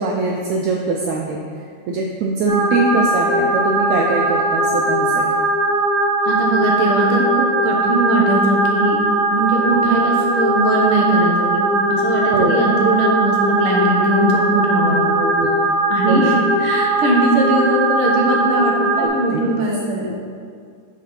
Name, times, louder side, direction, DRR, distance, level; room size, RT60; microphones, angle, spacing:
voice 1, 0.0-1.4 1.9-5.3 12.3-12.7 15.2-15.6 16.1-16.4 19.0-19.5 20.1-20.2, right 3 dB, 80° right, 0 dB, 1.7 m, -22 dB
sound 1, 2.5-19.1, right 1 dB, 80° left, 3.0 m, -19 dB
voice 2, 6.2-9.0 9.3-15.2 15.9-16.3 16.6-20.1, right 2 dB, 60° right, -1 dB, 1.5 m, -20 dB
7.2 x 4.3 x 5.4 m, 2.2 s
omnidirectional pair, 3.6 m